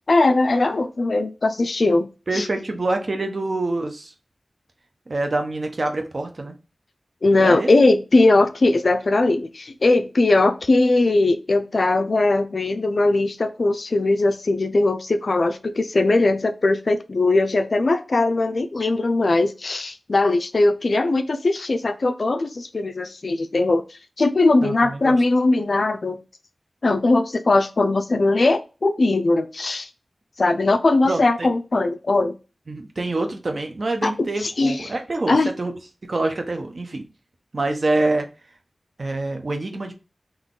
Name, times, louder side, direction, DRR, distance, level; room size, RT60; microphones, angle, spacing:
voice 1, 0.0-2.1 2.3-2.5 7.2-23.8 24.2-26.2 26.8-29.9 30.4-32.4 34.0-34.9 35.3-35.5, left 2 dB, 65° left, 9 dB, 0.5 m, -20 dB
voice 2, 2.3-4.1 5.1-6.5 7.4-7.7 24.6-25.2 31.0-31.5 32.7-35.7 36.0-37.1 37.5-38.3 39.0-39.9, right 2 dB, 60° right, 5 dB, 0.9 m, -26 dB
3.9 x 2.9 x 3.7 m, 0.31 s
wide cardioid pair, 65°, 0 cm